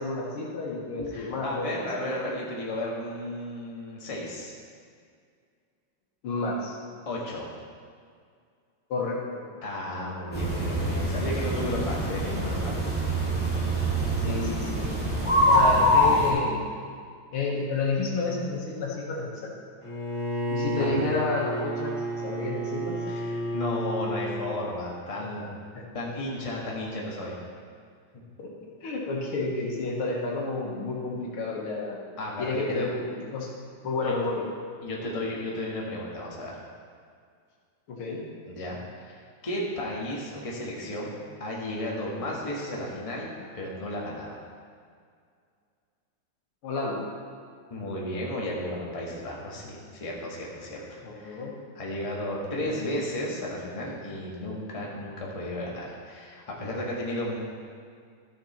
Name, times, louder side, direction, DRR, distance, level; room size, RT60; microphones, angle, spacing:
voice 1, 0.0-1.9 6.2-6.8 8.9-9.4 14.2-14.9 15.4-16.7 17.3-19.5 20.5-23.0 25.4-25.5 25.7-26.1 28.4-32.0 32.4-33.5 33.8-34.5 37.9-38.2 46.6-47.0 51.0-51.5 52.6-52.9, left 3 dB, 75° left, -2 dB, 2.3 m, -31 dB
voice 2, 1.0-4.5 7.0-7.5 9.6-12.7 15.5-15.8 20.7-21.0 23.1-25.5 25.9-27.3 32.2-32.9 34.0-34.1 34.8-36.6 38.5-44.4 47.7-51.5 51.7-57.4, left 1 dB, 20° left, -4 dB, 1.3 m, -34 dB
sound 1, 10.3-16.3, equal, 5° right, 1.9 m, -24 dB
Bowed string instrument, 19.8-24.6, equal, 40° left, 2.1 m, -31 dB
12.5 x 6.7 x 4.4 m, 2.2 s
omnidirectional pair, 2.4 m